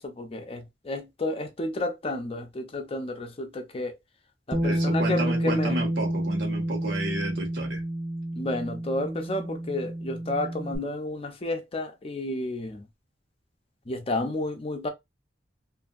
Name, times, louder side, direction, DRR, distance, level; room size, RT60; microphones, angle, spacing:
voice 1, 0.0-4.0 4.5-5.8 8.3-12.9 13.9-14.9, left 2 dB, 30° left, 0.6 m, -31 dB
Bass guitar, 4.5-10.8, right 1 dB, 10° right, 0.6 m, -29 dB
voice 2, 4.6-7.8, right 2 dB, 75° right, 1.2 m, -32 dB
2.6 x 2.6 x 2.4 m
head